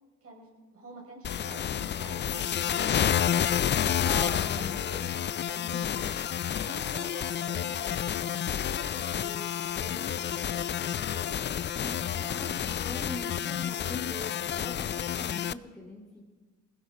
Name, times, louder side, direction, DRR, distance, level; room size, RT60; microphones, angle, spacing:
voice 1, 0.2-5.8 6.3-11.6, right 1 dB, 50° right, 1 dB, 5.1 m, -48 dB
sound 1, 1.2-15.5, left 9 dB, 35° left, 0.4 m, -30 dB
voice 2, 4.0-4.8 5.5-5.9 11.7-16.2, left 1 dB, 5° left, -3 dB, 2.4 m, -42 dB
20.0 x 15.5 x 4.5 m, 1.4 s
cardioid pair, 90°, 30 cm